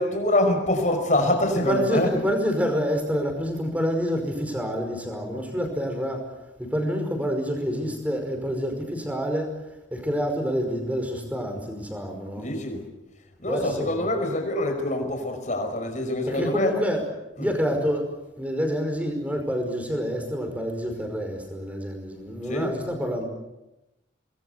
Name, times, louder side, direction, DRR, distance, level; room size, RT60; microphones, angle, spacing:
voice 1, 0.0-2.2 12.4-12.8 13.4-16.7 17.4-17.6 22.5-22.7, left 1 dB, 40° left, 5.5 m, -25 dB
voice 2, 1.7-6.2 6.6-9.5 9.9-12.5 13.5-14.1 16.3-17.0 17.4-18.0 18.4-23.2, equal, 10° right, 5.3 m, -27 dB
26.0 x 21.0 x 8.3 m
head